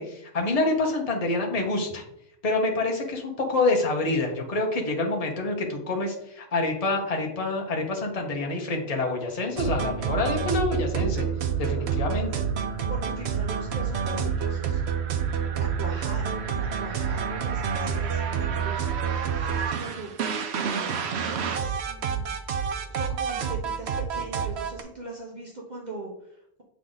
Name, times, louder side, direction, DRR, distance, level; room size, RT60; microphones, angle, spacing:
voice 1, 0.0-2.0 2.4-11.3 11.6-12.4, left 2 dB, 35° left, 1 dB, 1.0 m, -27 dB
sound 1, 9.6-24.8, right 7 dB, 80° right, 0.9 m, -28 dB
voice 2, 12.9-14.8 15.6-20.1 20.5-22.6 22.9-26.6, right 2 dB, 45° right, -2 dB, 1.0 m, -40 dB
7.5 x 3.6 x 3.9 m, 0.77 s
omnidirectional pair, 1.1 m